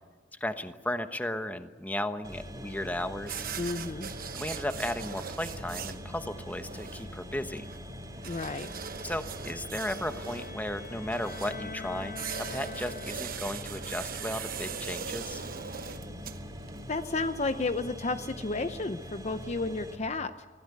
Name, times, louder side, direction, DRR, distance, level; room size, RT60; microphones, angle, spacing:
voice 1, 0.4-3.4 4.3-7.6 9.0-12.1 12.4-15.4, left 1 dB, 10° left, 8 dB, 1.1 m, -35 dB
sound 1, 2.2-19.9, equal, 20° right, 3.4 m, -43 dB
sound 2, 3.2-17.0, right 7 dB, 55° right, 1.1 m, -41 dB
voice 2, 3.6-4.1 8.3-8.7 16.9-20.5, left 3 dB, 40° left, 10 dB, 0.7 m, -32 dB
Bowed string instrument, 9.4-13.6, left 5 dB, 60° left, 1.4 m, -45 dB
25.0 x 16.5 x 9.6 m, 1.5 s
head